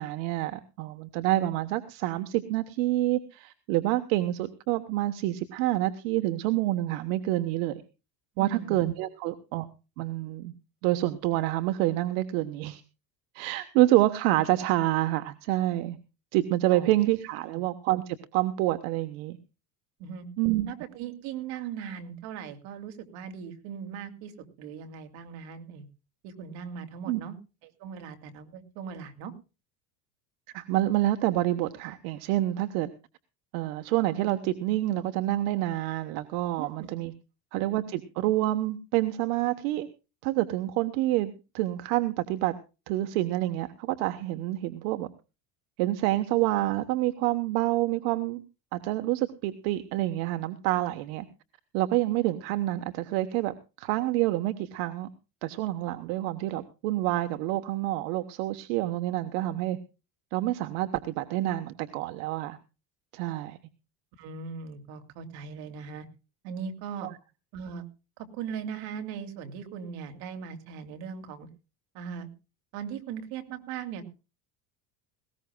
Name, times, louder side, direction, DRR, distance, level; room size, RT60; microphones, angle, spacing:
voice 1, 0.0-7.8 8.4-9.7 10.0-10.5 10.8-12.8 13.3-16.0 16.3-19.4 20.4-20.7 27.1-27.2 30.5-32.9 33.5-37.1 37.5-39.9 40.2-42.5 42.9-45.1 45.8-48.4 48.7-51.2 51.7-55.1 55.4-59.8 60.3-62.6 63.1-63.6 67.0-67.1, right 16 dB, 85° right, 10 dB, 1.2 m, -27 dB
voice 2, 8.4-8.8 16.7-16.9 20.0-20.3 20.7-25.9 26.2-27.4 27.6-29.3 36.6-36.9 64.2-66.1 66.4-67.1 67.5-67.8 68.2-71.5 71.9-72.3 72.7-74.1, right 7 dB, 65° right, 6 dB, 2.7 m, -39 dB
19.5 x 17.0 x 2.3 m, 0.31 s
cardioid pair, 160°, 41 cm